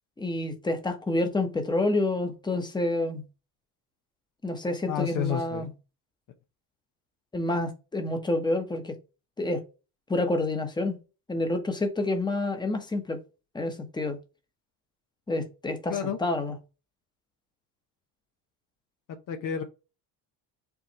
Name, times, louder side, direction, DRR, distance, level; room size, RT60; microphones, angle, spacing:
voice 1, 0.2-3.2 4.4-5.7 7.3-8.9 9.4-9.6 10.1-11.0 11.3-13.2 13.5-14.2 15.3-16.6, left 2 dB, 10° left, 1.0 m, -28 dB
voice 2, 4.9-5.7 15.9-16.2 19.1-19.6, left 9 dB, 50° left, 0.7 m, -30 dB
4.7 x 2.5 x 4.1 m
cardioid pair, 95°, 43 cm